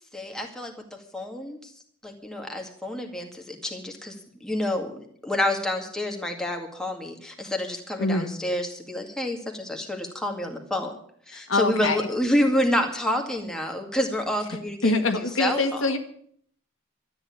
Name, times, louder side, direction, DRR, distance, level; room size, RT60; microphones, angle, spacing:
voice 1, 0.1-0.7 1.1-1.7 2.0-4.1 4.4-10.9 11.3-14.9 15.4-15.6, left 1 dB, 5° left, 2 dB, 2.1 m, -28 dB
voice 2, 8.0-8.3 11.3-12.1 14.8-16.0, left 2 dB, 80° left, 6 dB, 1.7 m, -24 dB
13.0 x 9.1 x 9.5 m, 0.62 s
head